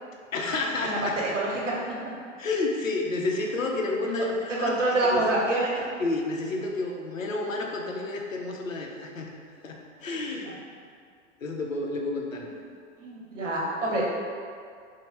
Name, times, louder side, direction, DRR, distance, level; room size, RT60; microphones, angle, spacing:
voice 1, 0.3-1.2 2.4-4.7 5.1-5.2 6.0-9.3 9.6-10.6 11.4-12.5, left 2 dB, 85° left, 0 dB, 0.5 m, -30 dB
voice 2, 0.8-1.8 4.6-5.7 12.3-12.5 13.0-14.2, right 1 dB, 70° right, -4 dB, 0.9 m, -26 dB
3.0 x 2.1 x 3.1 m, 2.2 s
figure-of-eight pair, 105°, 39 cm